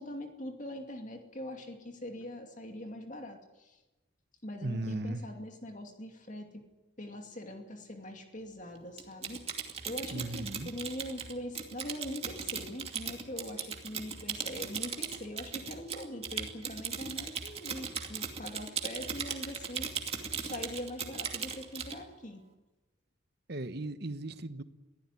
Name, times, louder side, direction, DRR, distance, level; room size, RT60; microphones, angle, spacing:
voice 1, 0.0-3.8 4.4-6.6 7.0-22.4, left 1 dB, 40° left, 4 dB, 2.5 m, -42 dB
voice 2, 4.6-5.2 10.1-10.7 23.5-24.6, right 2 dB, 55° right, 11 dB, 1.2 m, -36 dB
Typing, 9.0-22.0, right 6 dB, 30° right, 2.4 m, -38 dB
23.5 x 16.0 x 9.8 m, 1.1 s
head